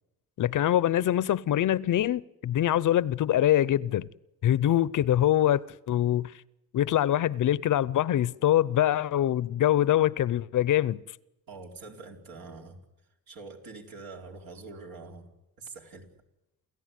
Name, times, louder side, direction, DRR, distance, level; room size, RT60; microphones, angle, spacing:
voice 1, 0.4-4.1 4.4-6.3 6.7-11.0, left 12 dB, 60° left, 0.7 m, -24 dB
voice 2, 11.5-12.8 13.3-15.3 15.6-16.1, right 3 dB, 70° right, 4.4 m, -44 dB
29.0 x 14.5 x 9.3 m
cardioid pair, 100°, 36 cm